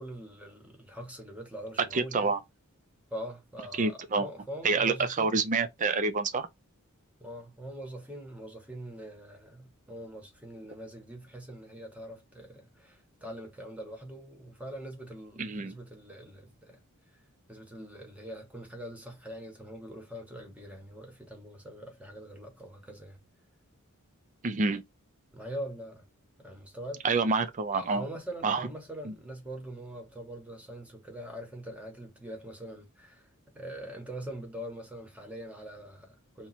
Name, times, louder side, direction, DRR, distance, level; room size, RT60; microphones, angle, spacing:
voice 1, 0.0-2.3 3.1-5.3 7.2-16.8 17.1-17.2 17.5-23.2 25.3-26.1 26.4-27.0 27.7-33.3 33.5-36.5, right 1 dB, 5° right, 1.0 m, -43 dB
voice 2, 1.9-2.4 3.8-4.3 4.6-6.5 15.4-15.8 24.4-24.8 27.0-28.0 28.4-28.6 29.1-29.2, right 4 dB, 35° right, 0.5 m, -27 dB
2.9 x 2.3 x 4.0 m
head